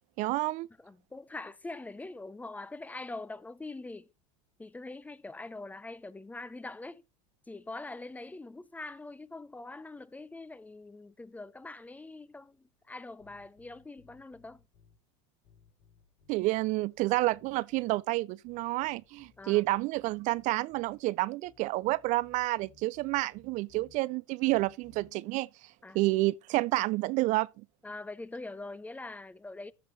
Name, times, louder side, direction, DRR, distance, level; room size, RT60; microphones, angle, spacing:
voice 1, 0.2-0.7 16.3-25.5 25.9-27.5, right 20 dB, 50° right, 0.4 m, -29 dB
voice 2, 0.8-4.1 4.6-7.0 7.5-14.6 19.4-19.6 25.8-26.0 27.8-29.7, left 2 dB, 10° left, 0.5 m, -43 dB
sound 1, 13.2-15.0 15.4-18.1 18.4-21.0 21.4-24.0 24.4-25.1, left 5 dB, 70° left, 5.0 m, -63 dB
13.5 x 5.0 x 4.0 m
supercardioid pair, 105°, 17 cm